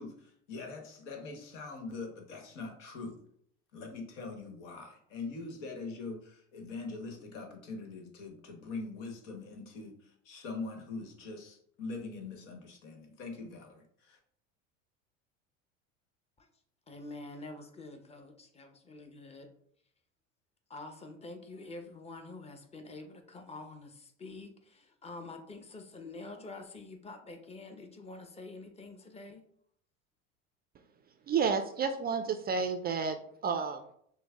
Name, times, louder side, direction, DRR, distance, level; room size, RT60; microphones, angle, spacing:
voice 1, 0.0-3.2 3.7-14.2, left 3 dB, 75° left, 4 dB, 1.2 m, -43 dB
voice 2, 16.9-19.5 20.7-29.4, left 2 dB, 15° left, 5 dB, 0.8 m, -47 dB
voice 3, 31.3-33.2 33.4-33.8, right 5 dB, 25° right, 7 dB, 0.4 m, -30 dB
6.1 x 2.1 x 3.5 m, 0.66 s
hypercardioid pair, 85°, 37 cm